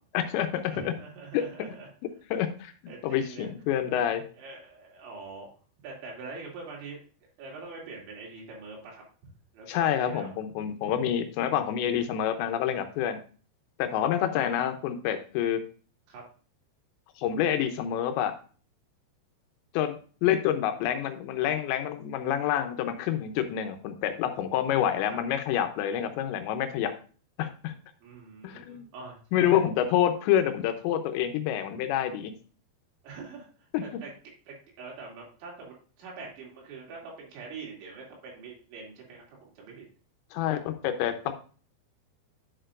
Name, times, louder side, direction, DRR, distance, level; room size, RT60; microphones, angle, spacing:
voice 1, 0.1-0.9 1.3-1.4 2.3-2.7 3.0-4.2 9.7-13.2 13.8-15.6 17.2-18.3 19.7-26.9 27.4-27.7 28.4-28.9 29.3-32.3 33.7-33.8 40.3-41.3, left 10 dB, 80° left, 7 dB, 3.0 m, -27 dB
voice 2, 0.7-1.9 2.9-3.5 4.3-5.5 5.8-7.0 7.4-9.0 9.5-10.3 14.2-14.7 16.1-16.2 25.0-25.2 28.0-29.6 33.0-34.1 34.5-39.8, right 4 dB, 80° right, -2 dB, 4.8 m, -44 dB
10.5 x 6.7 x 2.5 m, 0.39 s
omnidirectional pair, 5.2 m